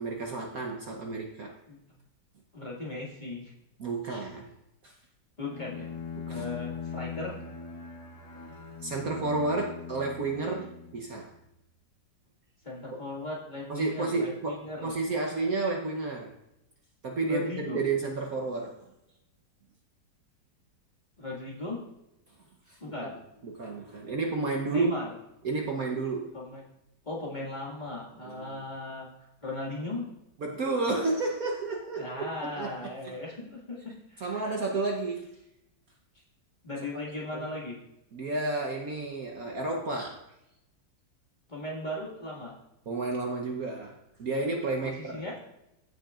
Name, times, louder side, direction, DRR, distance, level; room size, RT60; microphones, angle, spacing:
voice 1, 0.0-1.5 3.8-4.5 4.8-5.0 6.2-6.5 8.8-11.3 13.7-16.3 17.0-17.5 17.7-18.8 22.7-23.1 23.4-24.9 25.4-26.3 28.2-28.6 30.4-32.8 34.2-35.3 36.9-37.0 37.3-37.4 38.1-40.2 42.9-45.2, right 3 dB, 55° right, 1 dB, 1.2 m, -31 dB
voice 2, 2.5-3.5 5.4-5.9 6.3-7.3 12.6-14.9 17.3-17.8 21.2-21.8 22.8-23.1 24.7-25.1 26.3-26.6 27.0-30.1 32.0-34.5 36.1-36.2 36.6-37.8 41.5-42.5 44.8-45.4, left 2 dB, 25° left, -4 dB, 2.0 m, -37 dB
Bowed string instrument, 5.4-11.3, left 6 dB, 90° left, 2.5 m, -41 dB
15.5 x 6.5 x 2.5 m, 0.86 s
omnidirectional pair, 2.1 m